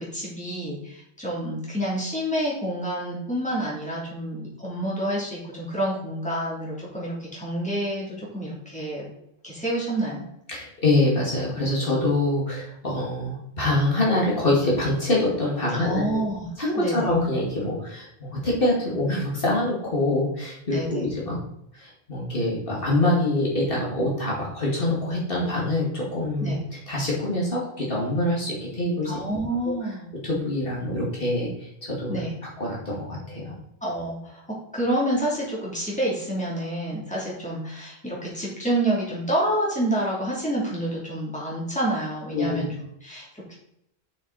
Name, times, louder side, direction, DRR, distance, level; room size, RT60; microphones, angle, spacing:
voice 1, 0.0-9.1 9.4-10.2 15.7-16.5 16.8-17.0 20.7-21.1 26.4-26.6 29.0-30.0 32.1-32.3 33.8-34.4 34.7-42.7 43.0-43.5, right 1 dB, 5° left, -6 dB, 3.0 m, -28 dB
voice 2, 10.5-16.2 16.6-21.4 21.7-26.5 26.9-29.1 29.6-29.7 30.2-32.2 32.6-33.5 42.3-42.7, left 1 dB, 60° left, -5 dB, 2.5 m, -25 dB
6.8 x 6.3 x 4.1 m, 0.79 s
omnidirectional pair, 1.1 m